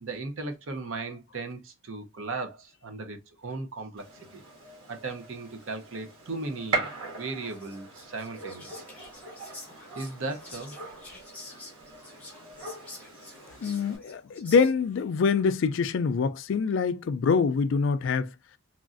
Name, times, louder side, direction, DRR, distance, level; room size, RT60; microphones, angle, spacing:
voice 1, 0.0-4.0 4.3-4.4 4.9-6.9 7.2-8.8 9.9-10.8, right 3 dB, 65° right, 0.6 m, -37 dB
Gunshot gunfire, 4.0-14.0, right 3 dB, 85° right, 1.3 m, -40 dB
Whispering, 7.5-15.0, left 2 dB, 5° left, 0.8 m, -48 dB
voice 2, 13.6-18.3, left 5 dB, 60° left, 0.3 m, -25 dB
3.0 x 2.5 x 2.4 m
head